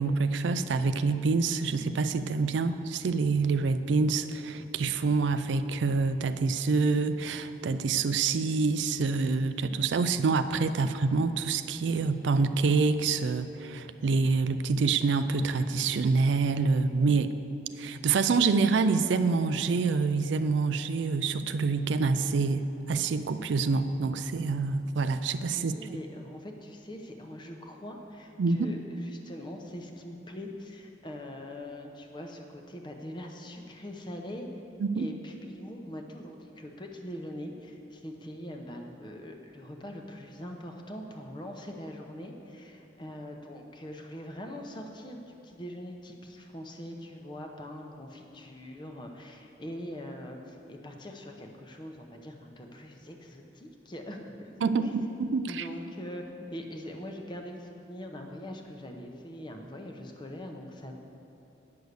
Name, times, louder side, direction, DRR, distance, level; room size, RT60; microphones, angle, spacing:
voice 1, 0.0-17.3 17.8-25.7 28.4-28.7 34.8-35.1 54.6-55.6, right 4 dB, 75° right, 11 dB, 0.4 m, -26 dB
voice 2, 25.5-34.5 34.9-54.9 55.5-61.0, equal, 25° left, 3 dB, 0.7 m, -42 dB
9.5 x 6.3 x 6.7 m, 2.9 s
head